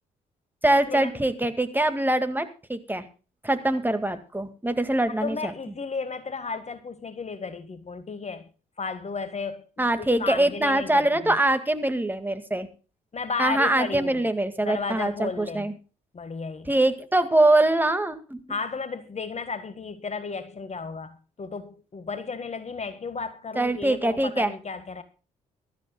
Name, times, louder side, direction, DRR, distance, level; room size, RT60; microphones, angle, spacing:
voice 1, 0.6-3.1 3.4-5.5 9.8-12.7 13.4-15.7 16.7-18.4 23.6-24.5, right 1 dB, 10° right, 2.1 m, -23 dB
voice 2, 5.2-8.5 8.8-9.6 10.0-11.4 13.1-14.2 14.6-15.7 16.1-16.7 18.5-25.0, left 4 dB, 35° left, 1.7 m, -33 dB
22.5 x 13.0 x 2.3 m
figure-of-eight pair, 45°, 20 cm